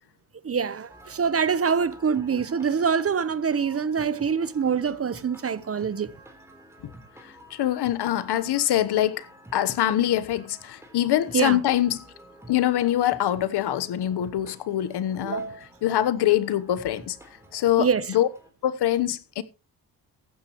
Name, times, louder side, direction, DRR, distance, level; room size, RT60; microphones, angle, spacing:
voice 1, 0.4-6.1 11.3-11.6 15.2-15.7 17.8-18.1, right 6 dB, 35° right, 0.9 m, -25 dB
sound 1, 0.9-18.5, right 1 dB, 5° right, 3.6 m, -49 dB
voice 2, 7.2-12.1 12.5-15.4 15.8-17.2 17.5-18.3 18.6-19.4, left 12 dB, 65° left, 1.2 m, -24 dB
15.0 x 12.0 x 3.1 m
cardioid pair, 85°, 42 cm